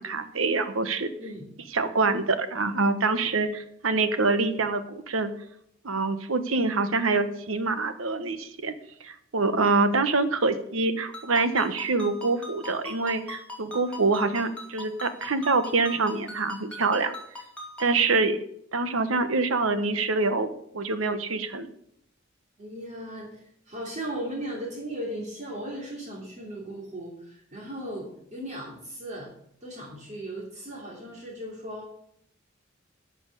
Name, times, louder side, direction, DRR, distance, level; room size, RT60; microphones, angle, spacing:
voice 1, 0.0-1.1 1.7-5.3 5.8-8.7 9.0-17.1 17.8-18.4 18.7-21.7, right 3 dB, 75° right, 10 dB, 1.1 m, -25 dB
Ringtone, 11.1-18.0, left 1 dB, 5° left, 2.4 m, -42 dB
voice 2, 22.6-29.3 29.6-31.9, right 1 dB, 35° right, -2 dB, 2.9 m, -37 dB
11.5 x 6.1 x 8.2 m, 0.70 s
head